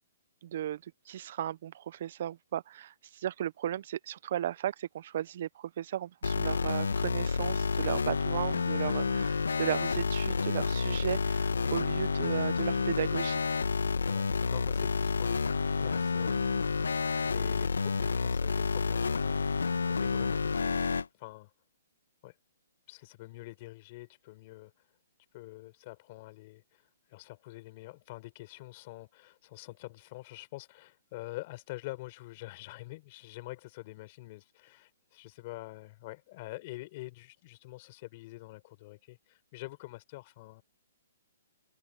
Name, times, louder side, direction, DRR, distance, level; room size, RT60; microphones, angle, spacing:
voice 1, 0.4-13.4, right 11 dB, 55° right, 1.1 m, -35 dB
sound 1, 6.2-21.0, left 5 dB, 90° left, 1.7 m, -29 dB
voice 2, 14.1-16.5 17.2-20.9 21.1-21.5 22.2-22.4 22.9-24.7 25.3-26.8 27.1-40.6, left 20 dB, 40° left, 5.0 m, -46 dB
hypercardioid pair, 145°, 0 cm